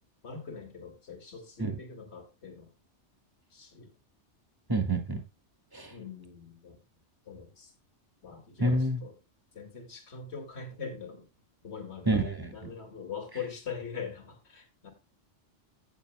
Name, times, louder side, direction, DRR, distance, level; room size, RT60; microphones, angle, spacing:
voice 1, 0.2-2.7 3.5-3.9 5.9-6.8 7.3-7.7 8.2-9.1 9.5-11.3 11.6-12.2 12.5-14.9, left 6 dB, 65° left, 2.5 m, -42 dB
voice 2, 4.7-5.2 5.7-5.9 8.6-9.0 12.1-12.7, right 2 dB, 20° right, 2.3 m, -28 dB
16.0 x 7.0 x 2.2 m
omnidirectional pair, 1.2 m